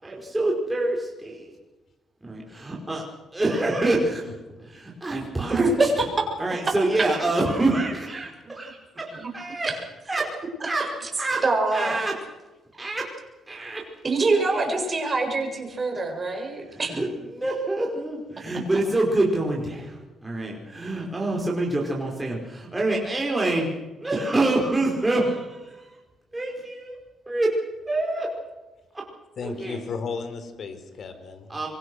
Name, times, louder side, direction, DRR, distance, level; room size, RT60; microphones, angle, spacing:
voice 1, 0.0-1.5 2.2-3.0 3.3-4.3 4.6-5.9 6.4-9.7 10.1-10.3 10.6-10.9 11.2-11.4 11.7-12.2 12.8-13.1 13.5-13.9 14.3-14.8 16.7-23.7 24.0-26.0 26.3-27.0 27.2-28.3 28.9-29.1 29.4-29.8 31.5-31.7, right 2 dB, 15° right, -2 dB, 5.2 m, -26 dB
voice 2, 5.5-6.1 9.2-9.3 11.4-12.0 14.0-16.9, right 3 dB, 30° right, 3 dB, 7.2 m, -24 dB
voice 3, 29.4-31.6, left 4 dB, 55° left, 9 dB, 4.1 m, -34 dB
25.5 x 23.5 x 6.4 m, 1.2 s
cardioid pair, 90°, 0 cm